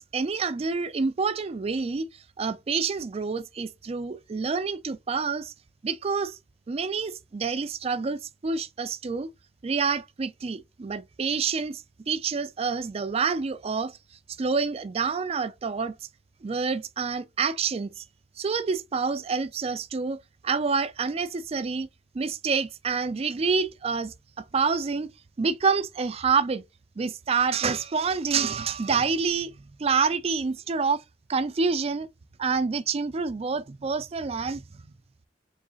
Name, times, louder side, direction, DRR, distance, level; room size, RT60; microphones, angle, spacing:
voice 1, 0.0-2.1 2.4-5.5 5.8-6.4 6.7-9.3 9.6-14.0 14.4-16.0 16.4-18.0 18.4-21.9 22.1-25.1 25.4-26.6 27.0-29.5 29.8-31.0 31.3-32.1 32.4-34.9, right 5 dB, 35° right, 0.4 m, -27 dB
3.7 x 3.1 x 3.9 m
head